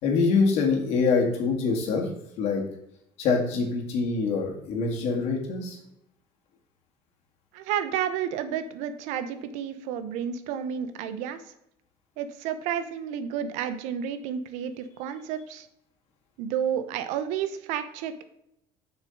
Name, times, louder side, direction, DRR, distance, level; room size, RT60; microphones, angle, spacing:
voice 1, 0.0-2.1 2.4-2.6 3.2-5.8, left 4 dB, 65° left, 1 dB, 2.2 m, -24 dB
voice 2, 7.5-11.4 12.2-15.7 16.4-18.3, right 9 dB, 80° right, 11 dB, 0.9 m, -31 dB
7.3 x 6.2 x 3.9 m, 0.79 s
cardioid pair, 145°, 12 cm